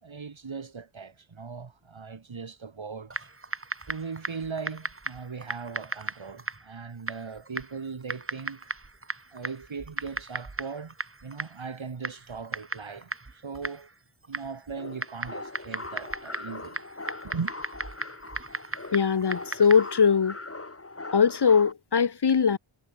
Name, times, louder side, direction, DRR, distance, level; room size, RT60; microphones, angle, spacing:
voice 1, 0.0-3.3 3.9-8.7 9.3-11.0 11.2-13.9 14.3-16.9 17.2-17.5, right 5 dB, 65° right, 3.9 m, -39 dB
Typing, 3.1-20.0, right 3 dB, 25° right, 2.0 m, -38 dB
sound 1, 14.7-21.7, left 3 dB, 30° left, 2.8 m, -41 dB
voice 2, 18.9-20.4 21.1-22.6, left 6 dB, 55° left, 1.2 m, -21 dB
wide cardioid pair, 75°, 49 cm